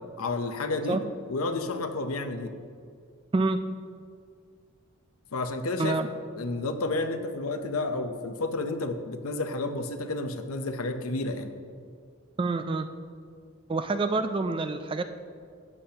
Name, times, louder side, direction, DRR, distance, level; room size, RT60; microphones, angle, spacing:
voice 1, 0.2-1.0 1.3-2.5 5.3-6.0 6.3-11.5, left 2 dB, 85° left, 8 dB, 0.7 m, -31 dB
voice 2, 5.8-6.1 12.4-12.9 13.7-15.0, right 3 dB, 25° right, 10 dB, 0.3 m, -27 dB
13.5 x 8.5 x 2.9 m, 2.2 s
head